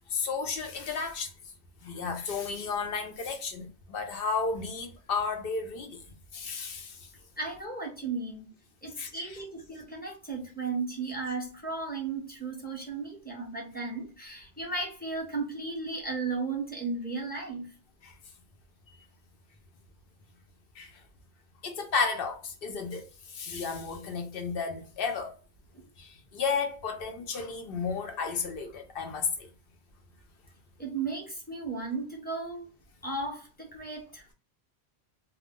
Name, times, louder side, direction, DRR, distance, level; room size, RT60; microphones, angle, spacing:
voice 1, 0.1-1.3 1.8-6.0 6.3-7.0 9.0-9.1 18.0-18.1 20.8-20.9 21.6-23.1 23.3-25.3 26.0-29.5, left 5 dB, 65° left, 0.7 m, -33 dB
voice 2, 7.4-8.5 8.8-17.7 25.7-25.9 30.8-32.7 33.0-34.3, right 3 dB, 10° left, 0.6 m, -35 dB
2.3 x 2.0 x 3.5 m
omnidirectional pair, 1.1 m